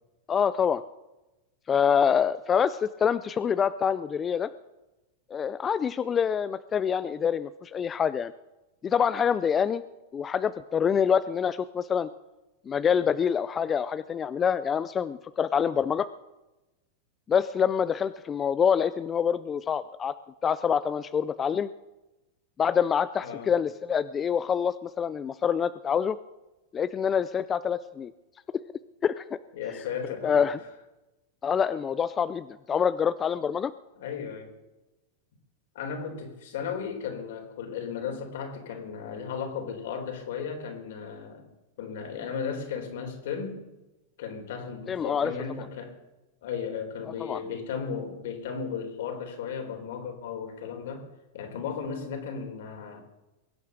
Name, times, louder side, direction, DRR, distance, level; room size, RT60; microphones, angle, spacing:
voice 1, 0.3-0.8 1.7-4.5 5.3-8.3 8.8-9.8 10.1-12.1 12.7-16.1 17.3-20.1 20.4-21.7 22.6-26.2 26.7-28.1 29.0-29.2 30.2-30.6 31.4-33.7 44.9-45.3 47.2-47.4, left 7 dB, 20° left, 14 dB, 0.5 m, -26 dB
voice 2, 23.2-23.6 29.5-30.5 34.0-34.5 35.7-41.5 41.8-43.6 44.2-46.0 46.4-51.1 51.3-53.0, left 6 dB, 70° left, 5 dB, 4.0 m, -35 dB
22.5 x 8.5 x 6.6 m, 1.0 s
supercardioid pair, 140°, 0 cm